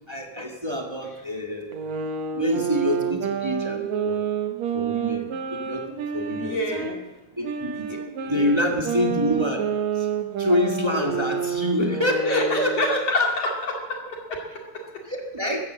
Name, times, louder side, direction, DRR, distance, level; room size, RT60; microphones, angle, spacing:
voice 1, 0.1-1.8 2.3-4.2 4.7-5.8 6.1-6.9 7.4-7.7 8.3-9.6 10.0-10.1 10.4-13.3 15.1-15.7, left 1 dB, 15° right, 2 dB, 1.2 m, -26 dB
sound 1, 1.7-7.0 7.4-13.0, right 7 dB, 70° right, 2.7 m, -29 dB
voice 2, 6.4-7.0 7.9-8.6 12.2-13.5 13.9-15.0, left 1 dB, 55° left, 1 dB, 3.3 m, -29 dB
15.0 x 13.0 x 7.6 m, 1.1 s
omnidirectional pair, 3.4 m